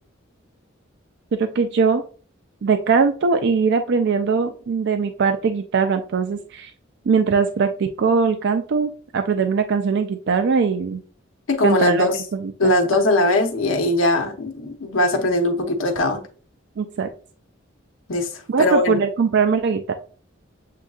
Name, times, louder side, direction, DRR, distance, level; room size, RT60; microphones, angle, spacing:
voice 1, 1.4-2.0 2.6-6.7 7.1-11.0 11.6-13.0 16.8-17.1 18.5-19.9, right 5 dB, 60° right, 0.4 m, -21 dB
voice 2, 11.5-12.2 12.6-16.2 18.1-18.3 18.6-18.9, left 2 dB, 85° left, 0.9 m, -20 dB
7.4 x 2.6 x 2.4 m
head